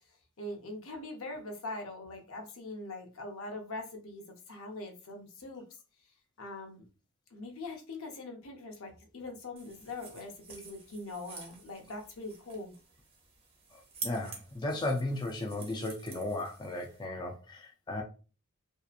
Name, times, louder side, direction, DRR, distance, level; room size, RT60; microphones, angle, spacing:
voice 1, 0.4-5.6 6.4-6.9 7.3-12.8, left 2 dB, 70° left, 0.7 m, -42 dB
sound 1, 9.6-17.1, right 4 dB, 25° right, 0.6 m, -48 dB
voice 2, 14.0-18.0, left 2 dB, 20° left, 0.4 m, -35 dB
2.7 x 2.4 x 2.4 m
head